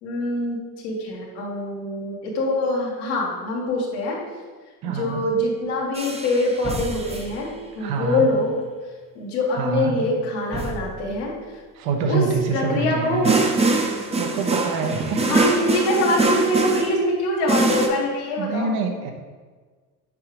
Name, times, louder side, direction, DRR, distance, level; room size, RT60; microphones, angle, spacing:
voice 1, 0.0-0.6 0.8-4.2 4.8-8.5 9.2-11.3 12.1-12.2 12.5-13.4 15.3-18.7, left 1 dB, 90° left, -3 dB, 1.8 m, -24 dB
voice 2, 4.8-5.2 7.8-8.3 9.5-10.0 11.7-13.3 14.1-15.2 18.4-19.1, right 5 dB, 75° right, 4 dB, 1.0 m, -25 dB
Drum Solo, 6.0-7.3 10.5-11.0 13.2-17.0 17.5-17.9, right 3 dB, 15° right, 0.7 m, -23 dB
7.2 x 5.0 x 3.0 m, 1.4 s
supercardioid pair, 100°, 36 cm